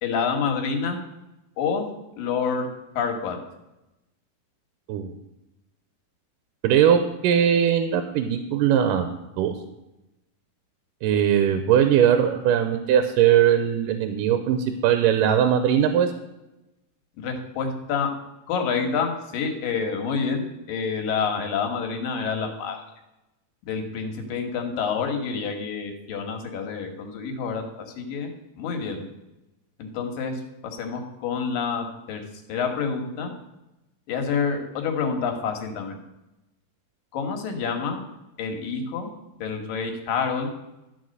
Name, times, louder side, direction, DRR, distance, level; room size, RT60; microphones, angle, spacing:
voice 1, 0.0-1.0 1.6-1.9 2.2-2.7 3.0-3.4 17.2-18.1 18.5-22.8 23.7-28.3 28.6-29.1 29.8-32.2 32.5-33.3 34.1-36.0 37.1-38.0 38.4-39.1 39.4-40.5, left 5 dB, 90° left, 4 dB, 3.0 m, -28 dB
voice 2, 6.6-9.1 9.4-9.5 11.0-16.1, right 9 dB, 90° right, 8 dB, 2.3 m, -20 dB
12.5 x 4.7 x 6.4 m, 0.95 s
omnidirectional pair, 3.8 m